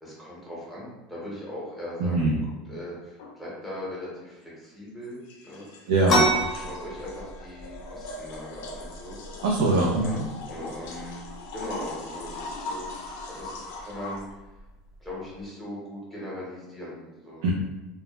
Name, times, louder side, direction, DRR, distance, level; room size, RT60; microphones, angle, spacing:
voice 1, 0.0-5.7 6.5-9.2 10.0-10.2 10.5-11.2 11.5-14.4 15.0-17.4, left 1 dB, ahead, -7 dB, 0.8 m, -39 dB
voice 2, 2.0-2.4 5.9-6.3 9.4-10.2 17.4-17.5, right 2 dB, 80° right, -2 dB, 0.4 m, -22 dB
sound 1, 3.2-3.3 5.0-14.3, left 3 dB, 75° left, 0.4 m, -41 dB
sound 2, 6.0-15.4, right 1 dB, 30° left, 0.6 m, -33 dB
2.2 x 2.0 x 2.9 m, 1.1 s
supercardioid pair, 150°, 0 cm